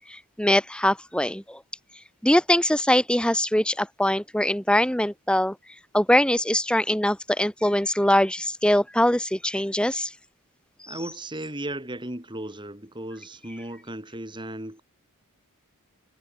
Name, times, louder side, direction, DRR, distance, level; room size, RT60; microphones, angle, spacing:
voice 1, 0.1-1.6 1.9-5.5 5.9-10.2 10.8-11.0, left 1 dB, 5° left, 1.8 m, -23 dB
voice 2, 10.9-14.8, right 1 dB, 20° right, 3.8 m, -35 dB
head